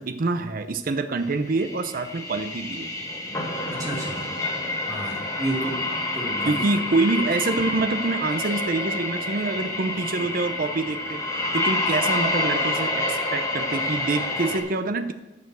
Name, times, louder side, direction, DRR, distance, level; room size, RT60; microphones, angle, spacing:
voice 1, 0.0-2.9 5.5-5.8 6.4-11.2 11.5-15.1, right 3 dB, 50° right, 8 dB, 0.6 m, -26 dB
sound 1, 1.4-14.6, left 2 dB, 20° left, 1.8 m, -28 dB
voice 2, 3.7-4.3 4.9-5.8 6.1-6.5, right 1 dB, 20° right, -3 dB, 2.6 m, -31 dB
11.0 x 6.9 x 6.2 m, 1.0 s
head